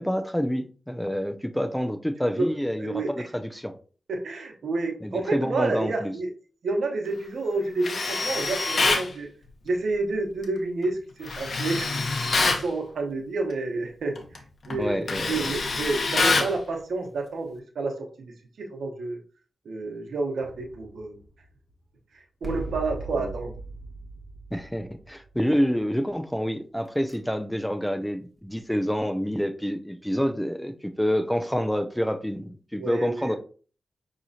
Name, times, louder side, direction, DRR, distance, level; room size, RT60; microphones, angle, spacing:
voice 1, 0.0-3.8 5.0-6.1 14.8-15.5 23.2-23.3 24.5-33.4, equal, 5° left, 0.6 m, -27 dB
voice 2, 2.8-3.3 4.1-6.3 6.6-9.3 9.6-19.2 19.6-21.2 22.4-23.5 32.8-33.3, right 3 dB, 85° right, 0.9 m, -29 dB
Tools, 7.8-9.1 11.3-12.7 14.2-14.4 14.7-16.6, left 3 dB, 60° left, 0.8 m, -25 dB
sound 1, 20.4-21.7 22.4-25.7 26.8-27.2, right 2 dB, 35° right, 1.5 m, -39 dB
5.9 x 3.0 x 2.7 m
cardioid pair, 50°, 0 cm